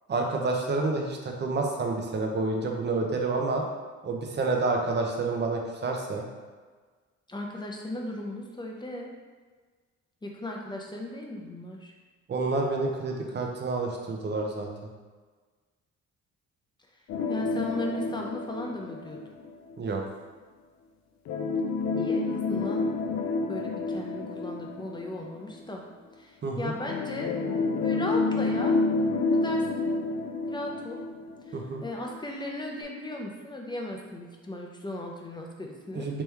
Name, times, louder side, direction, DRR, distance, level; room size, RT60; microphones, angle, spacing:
voice 1, 0.1-3.6 4.0-6.3 12.3-14.7 19.8-20.0 26.4-26.7 31.5-31.8 35.9-36.2, right 3 dB, 35° right, 1 dB, 0.7 m, -29 dB
voice 2, 7.3-9.1 10.2-11.9 17.3-19.2 22.0-22.9 23.5-25.8 26.2-27.3 27.8-28.8 29.3-29.9 30.5-31.0 31.5-36.1, left 1 dB, 15° left, 0 dB, 0.6 m, -36 dB
sound 1, 17.1-19.8 21.2-25.6 26.8-31.8 32.1-32.2 32.8-32.9, left 3 dB, 65° left, 0.5 m, -29 dB
3.3 x 3.1 x 3.3 m, 1.4 s
cardioid pair, 90°, 30 cm